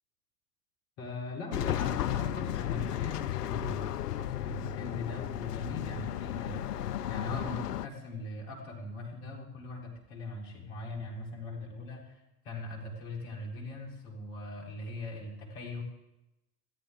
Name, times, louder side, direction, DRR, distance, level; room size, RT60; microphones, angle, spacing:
voice 1, 1.0-6.7 7.1-12.2 12.4-15.8, left 2 dB, 50° left, 0 dB, 3.9 m, -40 dB
sound 1, 1.5-7.9, left 11 dB, 75° left, 0.6 m, -34 dB
21.0 x 13.5 x 3.6 m, 0.92 s
figure-of-eight pair, 90°, 48 cm